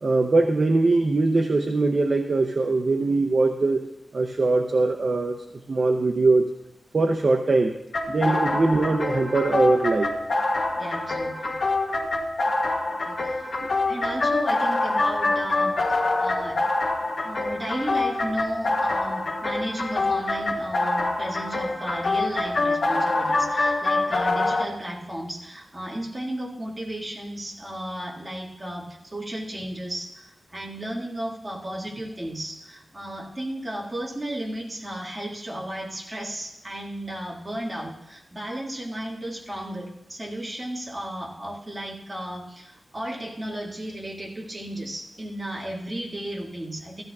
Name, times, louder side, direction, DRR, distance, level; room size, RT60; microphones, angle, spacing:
voice 1, 0.0-3.8 4.1-5.4 5.7-6.5 6.9-7.8 8.1-10.1 13.6-13.7, right 3 dB, 45° right, 2 dB, 0.6 m, -21 dB
sound 1, 7.9-24.6, left 2 dB, 65° left, 1.5 m, -25 dB
voice 2, 10.8-11.6 13.0-13.5 13.9-16.6 17.2-47.0, right 1 dB, 20° right, -3 dB, 1.9 m, -34 dB
15.5 x 13.0 x 2.4 m, 0.86 s
wide cardioid pair, 155°, 0 cm